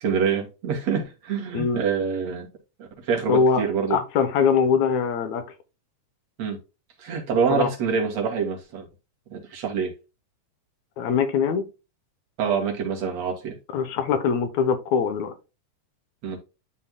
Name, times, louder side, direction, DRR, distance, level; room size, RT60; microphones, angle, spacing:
voice 1, 0.0-2.5 3.1-4.0 6.4-6.6 7.0-8.9 9.3-9.9 12.4-13.6 16.2-16.4, right 6 dB, 60° right, 2.9 m, -26 dB
voice 2, 3.3-3.6 3.9-5.4 7.5-7.7 11.0-11.7 13.7-15.3, left 6 dB, 75° left, 2.2 m, -22 dB
11.5 x 4.5 x 2.2 m
omnidirectional pair, 3.4 m